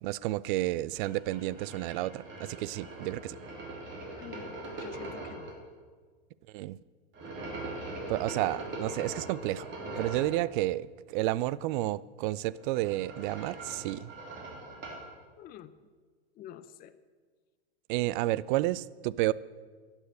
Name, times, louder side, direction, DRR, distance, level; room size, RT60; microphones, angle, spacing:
voice 1, 0.0-3.4 6.5-6.8 8.1-9.7 10.0-14.1 17.9-19.3, right 16 dB, 50° right, 0.4 m, -31 dB
sound 1, 1.0-5.5 7.1-10.4 12.5-15.1, right 2 dB, 35° right, 3.0 m, -41 dB
voice 2, 4.2-5.5 15.4-15.7 16.4-16.9, left 11 dB, 25° left, 0.5 m, -47 dB
11.5 x 7.4 x 7.8 m
hypercardioid pair, 110°, 34 cm